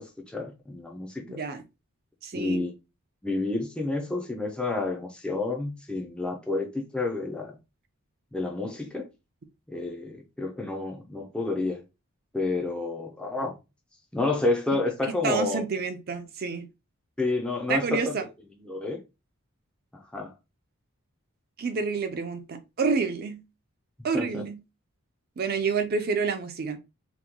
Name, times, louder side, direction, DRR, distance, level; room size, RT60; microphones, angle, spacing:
voice 1, 0.0-1.4 2.3-2.7 3.2-7.5 8.3-9.1 9.7-11.8 12.3-13.6 14.1-15.6 17.2-18.2 18.6-19.0 19.9-20.3 24.1-24.4, left 3 dB, 5° left, 0.5 m, -30 dB
voice 2, 1.3-1.6 2.2-2.6 15.0-16.7 17.7-18.2 21.6-23.4 24.0-24.6 25.4-26.8, right 5 dB, 45° right, 0.5 m, -28 dB
2.9 x 2.2 x 3.5 m
head